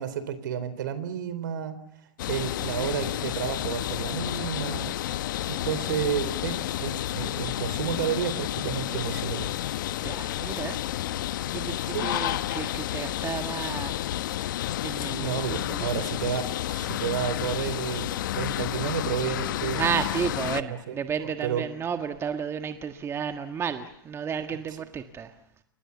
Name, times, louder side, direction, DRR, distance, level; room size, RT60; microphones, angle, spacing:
voice 1, 0.0-1.7 2.3-4.9 5.5-9.5 11.9-12.2 15.2-18.1 18.4-19.8 20.6-21.6, right 9 dB, 65° right, 14 dB, 3.8 m, -31 dB
sound 1, 2.2-20.6, left 13 dB, 65° left, 1.0 m, -31 dB
voice 2, 10.0-10.8 11.5-14.1 14.8-16.0 19.8-25.3, right 7 dB, 25° right, 7 dB, 1.6 m, -32 dB
28.5 x 24.0 x 7.1 m, 0.76 s
hypercardioid pair, 105°, 11 cm